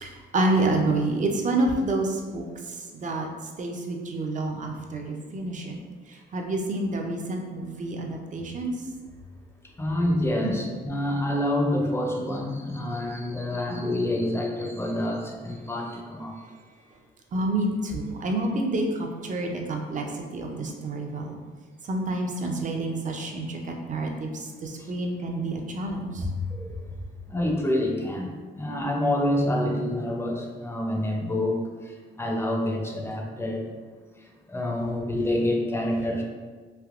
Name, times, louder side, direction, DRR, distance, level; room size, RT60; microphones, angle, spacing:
voice 1, 0.0-3.3 3.6-5.7 6.1-8.7 10.4-10.6 17.3-21.3 21.9-23.6 23.9-26.3, right 2 dB, 40° right, 2 dB, 0.5 m, -28 dB
voice 2, 9.8-16.4 23.5-23.6 24.8-24.9 26.5-26.8 27.3-33.7 34.5-36.2, left 1 dB, 10° left, 0 dB, 0.5 m, -27 dB
3.3 x 2.7 x 2.4 m, 1.4 s
cardioid pair, 90°, 20 cm